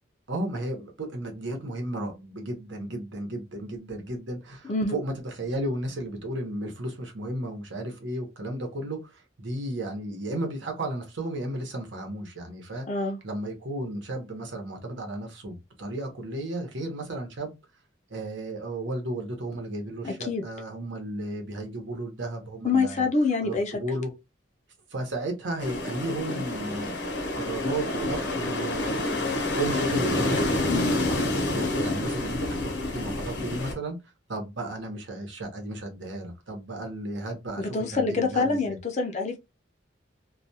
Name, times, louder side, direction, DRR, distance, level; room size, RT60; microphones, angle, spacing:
voice 1, 0.3-12.9 13.2-17.5 18.1-23.0 23.4-24.1 24.9-29.2 29.5-30.4 31.0-34.0 34.3-38.8, right 1 dB, 75° right, 0.9 m, -34 dB
voice 2, 12.9-13.2 20.0-20.4 22.6-23.8 30.7-30.9 37.6-39.4, left 4 dB, 35° left, 0.4 m, -26 dB
sound 1, 25.6-33.7, left 2 dB, 65° left, 0.8 m, -28 dB
2.4 x 2.2 x 2.7 m
head